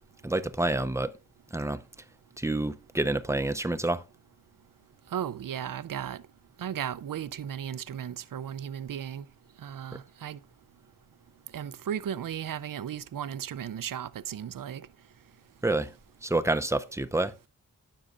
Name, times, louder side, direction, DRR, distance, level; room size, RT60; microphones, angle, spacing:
voice 1, 0.2-1.1 1.5-1.8 2.4-4.0 15.6-15.9 16.2-17.3, right 2 dB, 10° right, 0.6 m, -28 dB
voice 2, 5.1-6.2 6.6-9.2 9.6-10.4 11.5-14.8, right 9 dB, 70° right, 0.6 m, -35 dB
17.5 x 6.3 x 2.5 m
wide cardioid pair, 75°, 34 cm